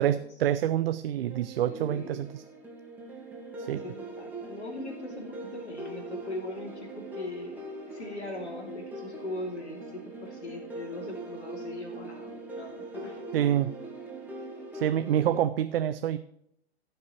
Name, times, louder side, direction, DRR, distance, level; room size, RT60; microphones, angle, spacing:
voice 1, 0.0-2.3 3.7-3.8 13.3-13.7 14.7-16.2, right 11 dB, 60° right, 12 dB, 0.6 m, -26 dB
Spire Melody, 1.3-15.4, right 2 dB, 5° right, 2.3 m, -42 dB
voice 2, 1.6-2.2 3.5-13.2, left 2 dB, 85° left, -2 dB, 3.1 m, -40 dB
15.0 x 5.9 x 4.4 m, 0.72 s
hypercardioid pair, 125°, 33 cm